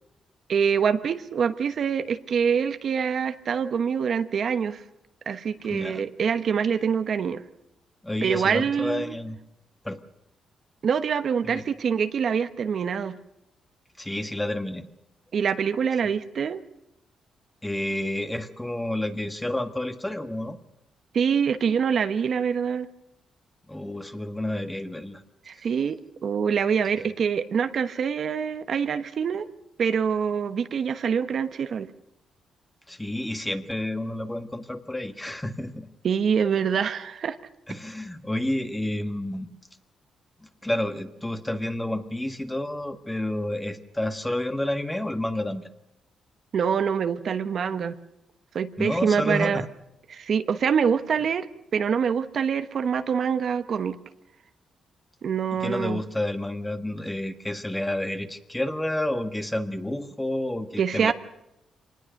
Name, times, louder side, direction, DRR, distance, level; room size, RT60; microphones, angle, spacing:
voice 1, 0.5-4.8 5.3-7.4 8.2-9.1 10.8-13.1 15.3-16.6 21.1-22.9 25.5-29.5 29.8-31.9 36.0-37.4 46.5-47.9 48.5-49.6 50.1-51.5 51.7-54.0 55.2-56.0 60.8-61.1, right 7 dB, 55° right, 10 dB, 1.1 m, -25 dB
voice 2, 5.7-6.0 8.0-9.4 9.8-10.0 11.4-11.6 14.0-14.9 17.6-20.6 23.7-25.2 27.0-27.1 32.9-35.9 37.7-39.5 40.6-45.7 48.8-49.6 55.6-61.1, left 1 dB, 10° left, 8 dB, 1.5 m, -30 dB
25.0 x 19.5 x 6.6 m, 0.86 s
cardioid pair, 105°, 0 cm